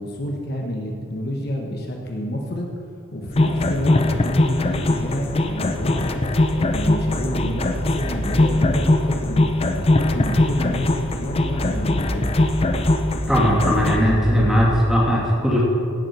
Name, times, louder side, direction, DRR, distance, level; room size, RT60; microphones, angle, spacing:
voice 1, 0.0-2.7 3.1-6.1 6.5-9.5 9.8-12.6, left 1 dB, 50° left, 0 dB, 1.2 m, -29 dB
sound 1, 3.3-14.9, right 1 dB, 35° right, 2.5 m, -31 dB
sound 2, 3.4-14.0, left 2 dB, 30° left, 0.6 m, -21 dB
voice 2, 13.3-15.6, equal, 5° right, -5 dB, 2.5 m, -18 dB
16.5 x 7.6 x 4.7 m, 2.5 s
head